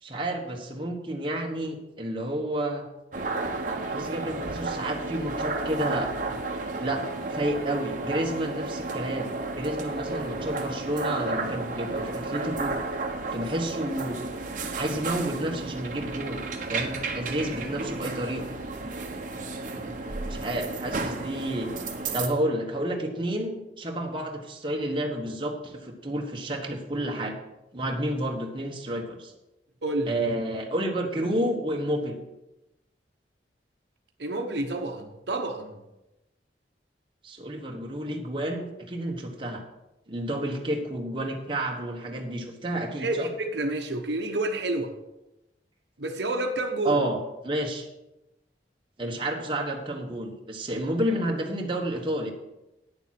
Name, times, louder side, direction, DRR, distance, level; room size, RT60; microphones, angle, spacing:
voice 1, 0.0-2.8 3.7-6.1 6.8-7.0 7.3-12.8 13.3-14.2 14.7-16.4 16.7-18.5 20.3-21.7 22.1-27.4 27.7-29.3 30.1-32.2 37.2-39.6 40.1-43.3 46.8-47.2 47.4-47.9 49.0-52.3, right 1 dB, 30° right, 1 dB, 1.3 m, -30 dB
sound 1, 3.1-22.3, right 3 dB, 45° right, 1.1 m, -32 dB
voice 2, 29.8-30.1 34.2-35.8 43.0-44.9 46.0-47.0, right 2 dB, 75° right, 4 dB, 1.0 m, -29 dB
9.7 x 7.1 x 5.9 m, 0.95 s
head